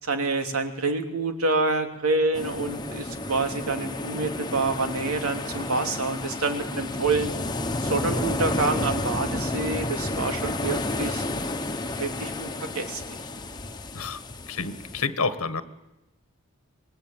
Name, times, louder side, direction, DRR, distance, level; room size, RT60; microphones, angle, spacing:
voice 1, 0.0-7.3 7.8-11.2 12.0-13.0, right 3 dB, 85° right, 6 dB, 2.9 m, -27 dB
sound 1, 2.3-15.1, left 2 dB, 20° left, 1.2 m, -31 dB
voice 2, 14.5-15.6, left 4 dB, 90° left, 12 dB, 1.5 m, -29 dB
26.0 x 21.0 x 9.1 m, 1.0 s
head